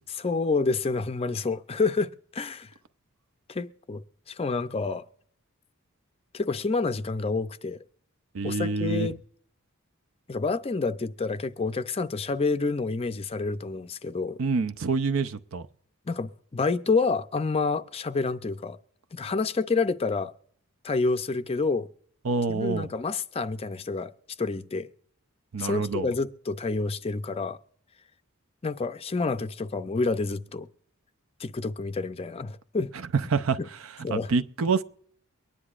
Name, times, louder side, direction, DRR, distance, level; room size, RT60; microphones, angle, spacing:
voice 1, 0.1-2.7 3.5-5.1 6.3-7.8 8.4-9.2 10.3-14.4 16.1-18.8 19.1-20.3 20.8-21.9 22.5-24.1 24.4-24.9 25.6-27.6 28.6-30.7 31.4-32.9 34.0-34.3, left 4 dB, 25° left, 0.4 m, -28 dB
voice 2, 8.3-9.1 14.4-15.7 22.2-22.9 25.5-26.1 32.9-34.8, right 4 dB, 65° right, 0.6 m, -27 dB
23.5 x 9.9 x 2.4 m
head